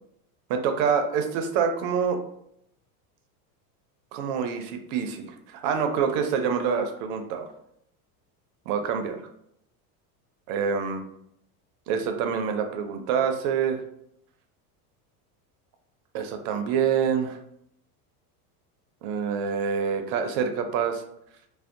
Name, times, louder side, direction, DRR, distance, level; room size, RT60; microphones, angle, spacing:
voice 1, 0.5-2.2 4.1-7.5 8.7-9.2 10.5-11.0 11.9-13.8 16.1-17.4 19.0-21.0, right 6 dB, 55° right, 6 dB, 0.4 m, -26 dB
2.6 x 2.0 x 2.4 m, 0.74 s
supercardioid pair, 120°, 45 cm